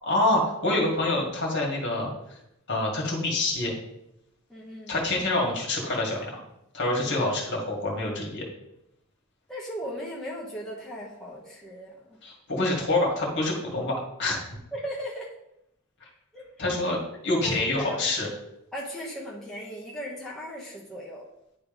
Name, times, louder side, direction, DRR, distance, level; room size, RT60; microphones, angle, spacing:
voice 1, 0.0-2.4 2.7-3.7 4.9-6.3 6.7-8.5 12.2-14.4 16.6-18.3, left 2 dB, 55° left, -1 dB, 1.9 m, -26 dB
voice 2, 4.5-4.9 7.0-7.2 9.5-12.2 14.7-15.3 16.3-16.7 17.4-18.1 18.7-21.2, equal, ahead, -6 dB, 1.2 m, -37 dB
10.0 x 3.4 x 5.2 m, 0.84 s
head